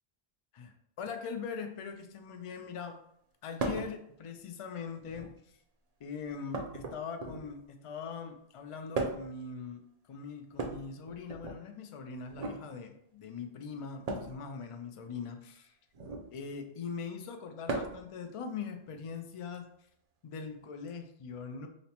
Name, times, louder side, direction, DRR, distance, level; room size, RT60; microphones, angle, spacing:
voice 1, 0.5-3.0 3.4-5.3 6.0-9.8 10.1-15.8 16.3-19.7 20.2-21.7, left 5 dB, 55° left, 6 dB, 0.3 m, -41 dB
sound 1, 3.6-3.9 5.0-5.5 6.5-7.6 8.9-9.4 10.5-11.6 12.3-12.6 14.0-14.4 15.9-16.3 17.7-18.1 19.5-19.6 20.9-21.0, right 3 dB, 50° right, 0.5 m, -36 dB
5.1 x 2.0 x 2.9 m, 0.71 s
omnidirectional pair, 1.0 m